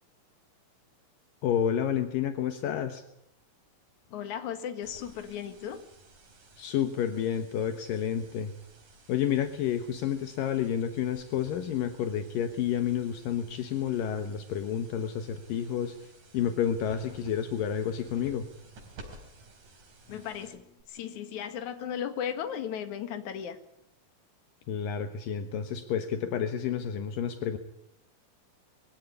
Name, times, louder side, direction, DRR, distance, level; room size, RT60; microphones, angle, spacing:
voice 1, 1.4-3.0 6.6-8.5 9.1-16.0 16.3-18.5 24.7-27.6, left 9 dB, 75° left, 8 dB, 2.9 m, -30 dB
voice 2, 4.1-5.8 20.1-23.6, left 9 dB, 60° left, 8 dB, 3.0 m, -36 dB
sound 1, 4.8-20.8, right 2 dB, 65° right, 5.5 m, -54 dB
23.0 x 16.5 x 9.8 m, 0.78 s
omnidirectional pair, 4.0 m